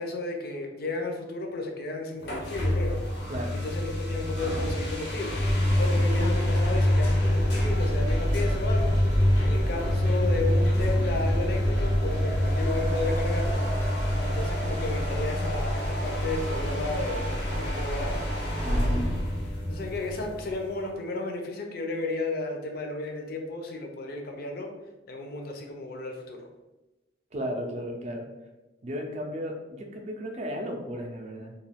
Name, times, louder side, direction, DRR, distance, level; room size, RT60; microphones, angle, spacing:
voice 1, 0.0-3.0 3.5-5.4 5.8-8.9 9.4-13.6 14.2-17.3 17.5-18.2 19.7-24.7 25.1-26.4, left 2 dB, 55° left, 2 dB, 0.5 m, -33 dB
sound 1, 2.2-20.7, left 1 dB, 90° left, 0.7 m, -26 dB
voice 2, 18.6-19.1 27.3-28.3 28.8-31.5, equal, 40° right, 2 dB, 0.4 m, -34 dB
2.3 x 2.3 x 3.3 m, 1.0 s
head